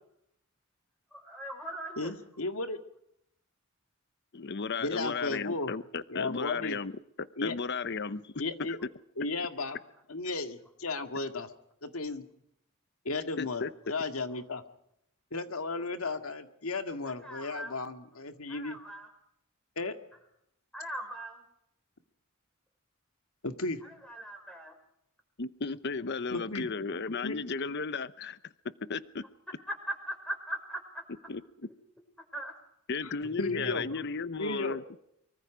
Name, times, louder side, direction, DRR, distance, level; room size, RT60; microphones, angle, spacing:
voice 1, 1.1-2.1 17.1-17.8 18.5-19.1 20.7-21.4 24.1-24.7 30.1-31.0 31.6-31.7 32.3-32.5 33.5-33.7, right 1 dB, 5° left, 6.1 m, -40 dB
voice 2, 2.0-2.8 4.8-5.7 6.1-6.8 7.4-7.6 8.4-8.8 9.2-9.8 10.1-11.5 11.8-12.2 13.1-14.6 15.3-18.8 19.8-19.9 23.4-23.8 26.3-26.6 27.2-27.4 33.0-33.1 33.4-33.9 34.4-34.8, left 3 dB, 90° left, 2.1 m, -34 dB
voice 3, 4.3-6.9 7.2-8.3 8.7-8.8 13.4-13.7 25.4-28.4 28.9-29.2 31.3-31.7 32.9-34.8, left 4 dB, 55° left, 0.8 m, -34 dB
24.0 x 24.0 x 5.0 m
head